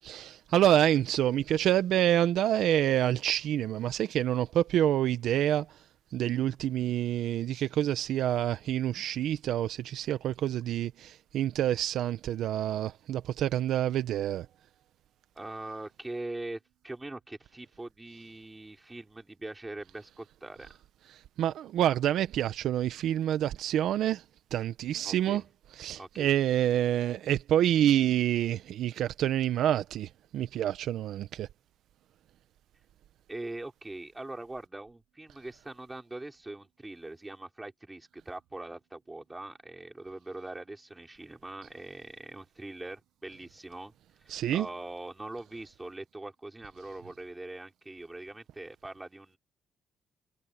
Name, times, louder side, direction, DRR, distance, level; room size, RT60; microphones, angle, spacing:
voice 1, 0.0-5.7 6.1-14.5 21.4-24.2 24.5-25.4 25.8-31.5 44.3-44.7, right 11 dB, 80° right, 0.8 m, -27 dB
voice 2, 15.3-20.7 25.0-25.4 26.0-26.3 33.3-43.9 44.2-49.4, right 2 dB, 15° right, 5.1 m, -42 dB
cardioid pair, 90°, 0 cm